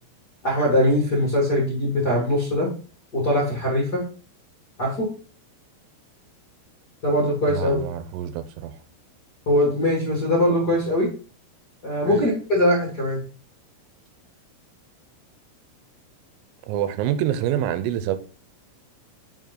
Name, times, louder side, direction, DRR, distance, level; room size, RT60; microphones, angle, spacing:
voice 1, 0.4-2.7 3.1-4.0 4.8-5.1 7.0-7.8 9.4-11.1 11.8-13.2, left 1 dB, 35° left, 1.7 m, -21 dB
voice 2, 7.5-8.8 12.1-12.2 16.6-18.2, right 10 dB, 80° right, 3.2 m, -26 dB
9.0 x 6.9 x 3.8 m
omnidirectional pair, 6.0 m